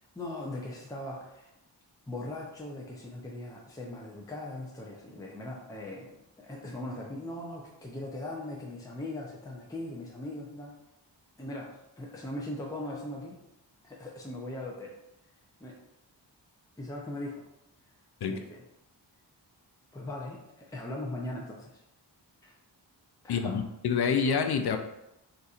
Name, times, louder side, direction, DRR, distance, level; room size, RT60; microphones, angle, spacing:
voice 1, 0.1-1.5 2.1-10.8 11.4-11.7 12.0-13.4 13.8-14.9 15.6-15.8 16.8-17.4 18.3-18.6 19.9-21.8 22.4-22.6 23.2-23.6, left 1 dB, 10° left, -2 dB, 0.5 m, -39 dB
voice 2, 23.3-24.8, left 6 dB, 60° left, 7 dB, 0.5 m, -27 dB
4.1 x 2.6 x 2.4 m, 0.87 s
wide cardioid pair, 65°, 44 cm